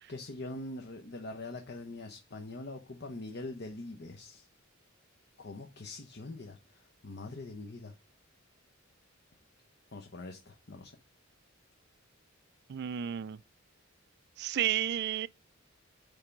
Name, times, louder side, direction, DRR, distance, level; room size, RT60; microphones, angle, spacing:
voice 1, 0.1-4.5 5.4-6.6 7.0-7.9 9.9-11.0, left 2 dB, 55° left, 1.0 m, -43 dB
voice 2, 12.7-13.4 14.4-15.3, right 10 dB, 55° right, 0.4 m, -32 dB
9.2 x 3.5 x 5.8 m
head